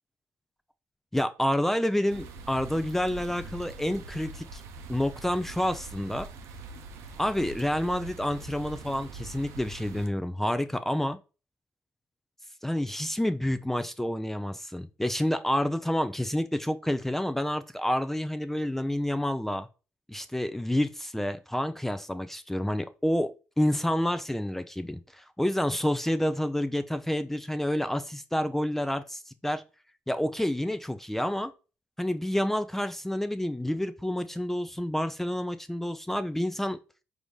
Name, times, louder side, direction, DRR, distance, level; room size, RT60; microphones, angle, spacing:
voice 1, 1.1-4.6 4.9-6.3 7.2-11.2 12.6-19.7 20.1-23.3 23.6-29.6 30.1-31.5 32.0-36.8, left 1 dB, 5° left, 0.3 m, -29 dB
sound 1, 2.1-10.1, right 3 dB, 80° right, 0.7 m, -43 dB
4.7 x 2.6 x 3.4 m
cardioid pair, 85°, 5 cm